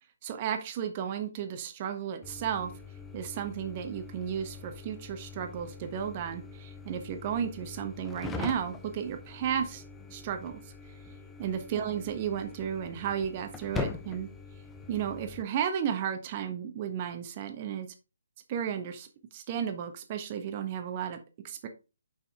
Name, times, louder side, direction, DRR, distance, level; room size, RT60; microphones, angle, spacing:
voice 1, 0.2-2.7 3.1-9.8 10.1-10.6 11.4-14.3 14.9-17.9 18.5-19.1 19.3-21.2 21.4-21.7, right 8 dB, 30° right, 7 dB, 1.2 m, -33 dB
sound 1, 2.2-15.4, left 4 dB, 10° left, 0.7 m, -43 dB
6.9 x 5.6 x 3.7 m, 0.30 s
figure-of-eight pair, 140°, 0 cm